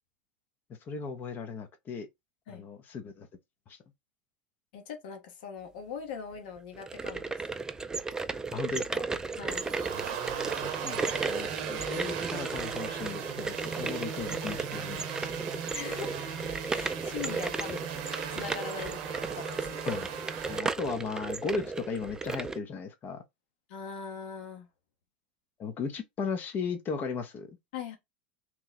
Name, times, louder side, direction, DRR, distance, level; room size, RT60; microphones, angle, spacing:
voice 1, 0.9-2.1 2.5-3.3 3.7-3.8 8.5-9.2 10.6-15.3 19.9-20.1 20.5-23.2 25.6-27.5, left 5 dB, 35° left, 0.7 m, -36 dB
voice 2, 4.7-7.3 9.4-9.6 15.7-16.3 16.7-17.8 18.3-19.0 19.3-19.8 23.7-24.7 27.7-28.0, left 6 dB, 70° left, 1.1 m, -41 dB
sound 1, 6.7-22.6, right 4 dB, 10° right, 0.3 m, -35 dB
sound 2, 9.5-20.6, right 8 dB, 60° right, 0.7 m, -38 dB
2.9 x 2.1 x 3.9 m
hypercardioid pair, 100°, 5 cm